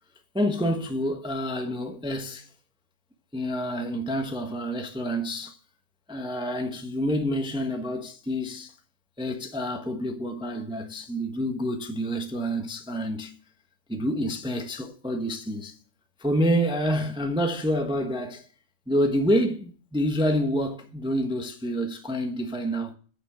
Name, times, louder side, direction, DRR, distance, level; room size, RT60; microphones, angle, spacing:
voice 1, 0.3-2.5 3.3-5.6 6.1-8.7 9.2-13.4 13.9-15.8 16.2-18.5 18.9-22.9, equal, 5° right, 0.8 m, -28 dB
9.3 x 6.7 x 8.8 m
omnidirectional pair, 1.9 m